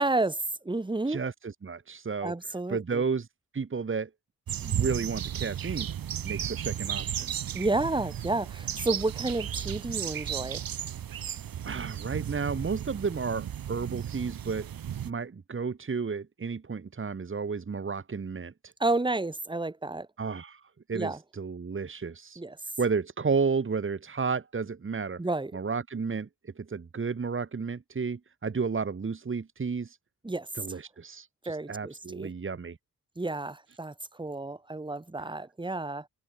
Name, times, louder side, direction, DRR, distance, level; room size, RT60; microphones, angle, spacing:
voice 1, 0.0-1.2 2.2-3.0 7.5-10.6 18.8-20.1 20.9-21.2 22.4-22.6 25.2-25.5 30.2-30.5 31.5-32.3 33.2-36.1, right 2 dB, 15° right, 1.9 m, -31 dB
voice 2, 1.1-2.3 2.7-3.3 3.5-4.1 4.6-5.9 6.2-7.3 11.6-14.7 15.0-18.7 20.2-20.6 20.9-22.4 22.8-25.2 25.5-30.0 30.6-32.8, right 5 dB, 35° right, 2.2 m, -32 dB
sound 1, 4.5-15.1, right 9 dB, 80° right, 2.1 m, -34 dB
wide cardioid pair, 110°, 35 cm